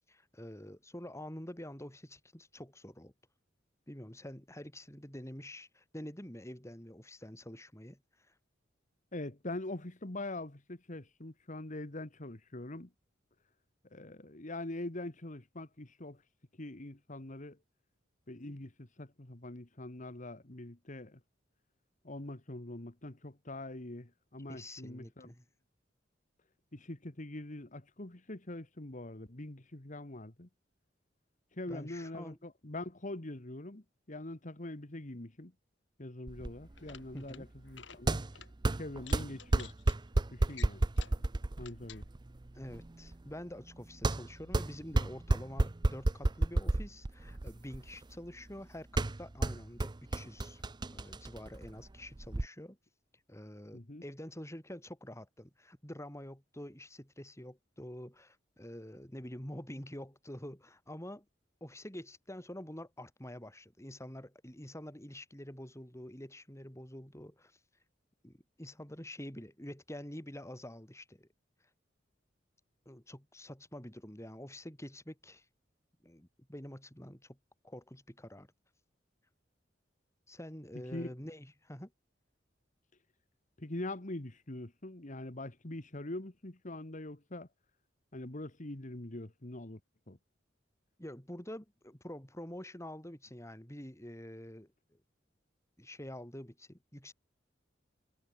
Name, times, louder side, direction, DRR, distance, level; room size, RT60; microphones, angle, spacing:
voice 1, 0.1-3.1 3.9-8.0 24.5-25.4 31.7-32.4 37.1-37.5 42.5-50.6 50.9-52.8 53.3-61.2 61.6-67.5 68.2-71.3 72.9-75.4 76.0-77.4 77.6-78.5 80.3-81.9 91.0-95.0 95.8-97.1, left 1 dB, 15° left, 6.2 m, -47 dB
voice 2, 9.1-12.9 13.9-16.2 16.6-17.6 18.3-21.2 22.0-25.3 26.7-30.5 31.5-35.5 36.0-38.2 38.8-39.7 40.3-40.9 41.6-42.1 53.7-54.0 80.9-81.1 83.6-87.5 88.1-89.8 90.1-90.2, left 1 dB, 45° left, 1.8 m, -43 dB
sound 1, 36.3-52.5, right 2 dB, 25° right, 0.6 m, -33 dB
sound 2, 36.8-37.4 37.7-38.0 38.3-38.5 39.0-40.0 40.5-41.2 41.6-42.0, left 8 dB, 75° left, 5.2 m, -52 dB
head